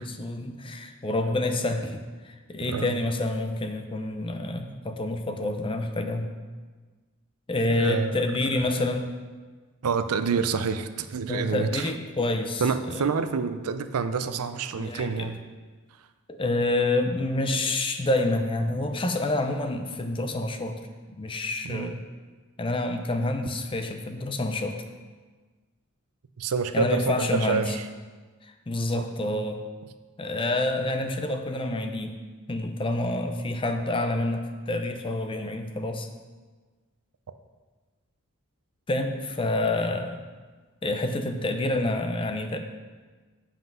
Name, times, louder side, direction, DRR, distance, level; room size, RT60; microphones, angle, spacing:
voice 1, 0.0-6.3 7.5-9.1 11.3-12.6 12.9-13.0 14.7-15.3 16.3-20.9 21.2-22.0 22.6-24.8 26.7-27.6 28.4-29.6 30.2-32.2 32.5-36.1 38.9-40.2 40.8-42.6, left 2 dB, 25° left, 6 dB, 0.6 m, -28 dB
voice 2, 7.7-8.8 9.8-11.9 12.6-15.4 21.6-22.0 26.4-27.9 28.9-29.1, right 5 dB, 85° right, 11 dB, 0.5 m, -28 dB
7.4 x 5.8 x 5.5 m, 1.4 s
head